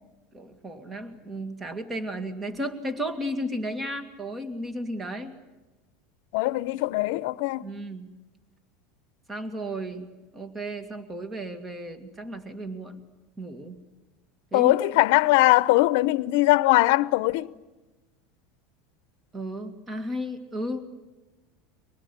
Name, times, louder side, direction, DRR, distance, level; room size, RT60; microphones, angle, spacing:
voice 1, 0.3-5.3 7.6-8.1 9.3-13.0 13.4-13.8 14.5-14.7 19.3-20.9, equal, 20° right, 2.2 m, -34 dB
voice 2, 6.3-7.6 14.5-17.5, left 18 dB, 70° left, 0.8 m, -21 dB
24.5 x 20.0 x 9.8 m
supercardioid pair, 135°, 0 cm